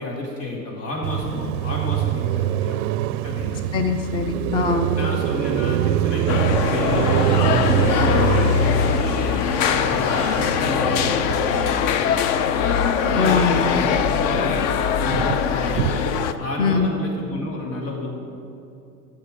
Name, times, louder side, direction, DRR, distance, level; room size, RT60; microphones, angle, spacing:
voice 1, 0.0-2.8 3.2-3.6 4.9-12.5 13.1-14.7 15.0-16.0 16.4-18.1, left 2 dB, 80° left, -2 dB, 3.0 m, -31 dB
Car passing by, 1.0-13.5 13.8-16.3, right 13 dB, 60° right, 0.5 m, -25 dB
voice 2, 3.7-5.0 13.2-13.7 16.6-16.9, left 5 dB, 10° left, 6 dB, 0.4 m, -22 dB
sound 1, 6.3-16.3, left 7 dB, 45° left, 0.7 m, -21 dB
12.0 x 7.7 x 5.3 m, 2.7 s
hypercardioid pair, 105°, 48 cm